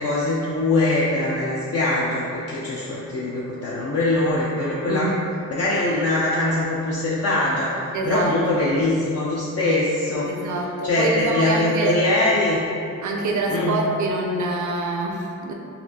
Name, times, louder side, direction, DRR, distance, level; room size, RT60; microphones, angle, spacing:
voice 1, 0.0-5.1 5.5-7.7 8.1-10.3 10.8-12.6 13.5-13.8, left 2 dB, 50° left, -6 dB, 0.5 m, -22 dB
voice 2, 4.9-5.2 7.9-8.3 10.3-12.0 13.0-15.5, right 2 dB, 65° right, 1 dB, 0.6 m, -25 dB
4.0 x 2.6 x 2.8 m, 2.7 s
cardioid pair, 85°, 32 cm